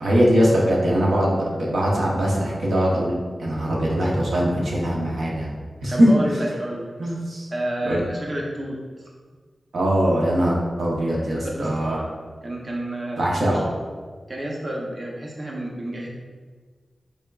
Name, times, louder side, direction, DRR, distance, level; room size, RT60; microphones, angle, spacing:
voice 1, 0.0-5.5 5.8-6.1 7.0-7.5 7.9-8.1 9.7-12.0 13.2-13.7, equal, 90° right, -4 dB, 0.8 m, -21 dB
voice 2, 5.9-6.9 7.5-8.8 11.2-12.1 12.4-13.6 14.3-16.1, right 1 dB, 40° right, -2 dB, 0.6 m, -30 dB
4.2 x 3.5 x 2.3 m, 1.5 s
cardioid pair, 65°, 0 cm